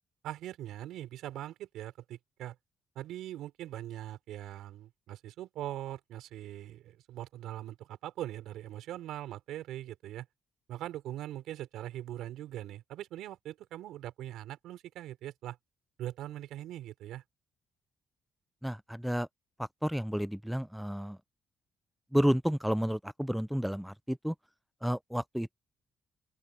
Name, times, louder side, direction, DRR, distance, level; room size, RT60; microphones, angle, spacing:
voice 1, 0.2-2.6 2.9-10.3 10.7-15.6 16.0-17.2, right 13 dB, 85° right, 5.2 m, -41 dB
voice 2, 18.6-19.3 19.6-21.2 22.1-24.3 24.8-25.5, equal, ahead, 0.4 m, -31 dB
open air
cardioid pair, 90°, 0 cm